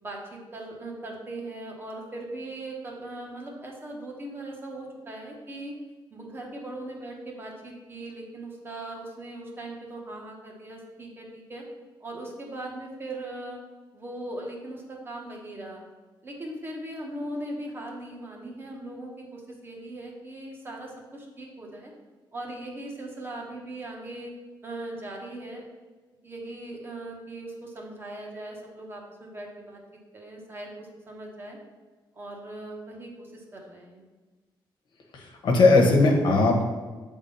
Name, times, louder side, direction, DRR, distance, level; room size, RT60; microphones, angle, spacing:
voice 1, 0.0-5.7 6.1-11.6 12.0-13.6 13.9-15.9 16.2-21.9 22.3-24.3 24.6-25.6 26.2-29.8 30.1-31.6 32.1-34.0, right 1 dB, 25° right, -1 dB, 1.2 m, -39 dB
voice 2, 35.1-36.7, left 3 dB, 60° left, 2 dB, 1.2 m, -19 dB
8.0 x 3.6 x 5.5 m, 1.3 s
wide cardioid pair, 170°, 9 cm